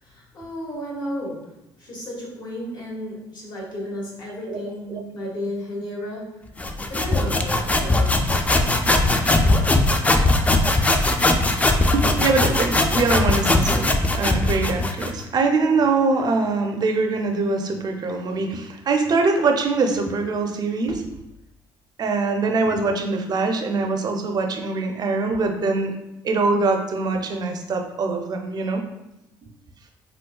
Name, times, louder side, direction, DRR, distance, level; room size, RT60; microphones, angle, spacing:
voice 1, 0.0-1.5 1.8-6.4 6.9-8.3, equal, 45° left, -4 dB, 1.4 m, -33 dB
sound 1, 6.6-15.2, left 2 dB, 15° left, 0.3 m, -20 dB
voice 2, 11.9-21.0 22.0-25.9 26.2-28.8, right 3 dB, 45° right, 4 dB, 0.5 m, -23 dB
3.7 x 2.2 x 2.2 m, 0.89 s
supercardioid pair, 65°, 10 cm